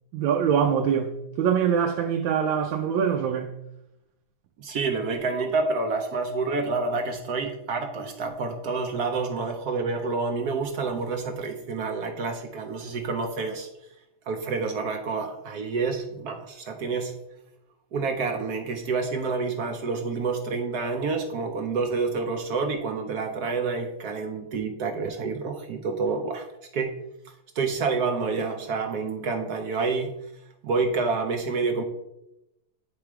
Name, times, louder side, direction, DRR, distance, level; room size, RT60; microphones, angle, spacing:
voice 1, 0.1-3.5, right 7 dB, 85° right, 1.4 m, -24 dB
voice 2, 4.6-13.7 14.3-17.1 17.9-26.5 26.7-27.0 27.6-30.2 30.6-31.8, right 4 dB, 65° right, 1.0 m, -28 dB
9.5 x 3.5 x 4.5 m
omnidirectional pair, 2.1 m